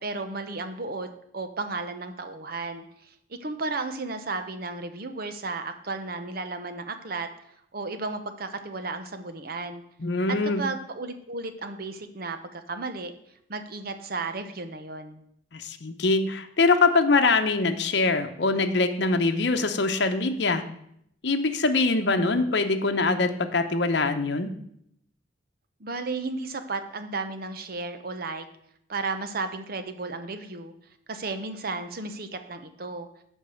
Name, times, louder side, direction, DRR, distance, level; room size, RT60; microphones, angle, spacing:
voice 1, 0.0-7.3 7.7-9.8 10.4-13.1 13.5-15.2 25.8-28.5 28.9-30.7 31.1-33.1, right 3 dB, 55° right, 8 dB, 0.9 m, -34 dB
voice 2, 10.0-10.6 15.5-20.6 21.2-24.5, left 3 dB, 65° left, 6 dB, 0.9 m, -23 dB
8.2 x 5.4 x 6.9 m, 0.73 s
head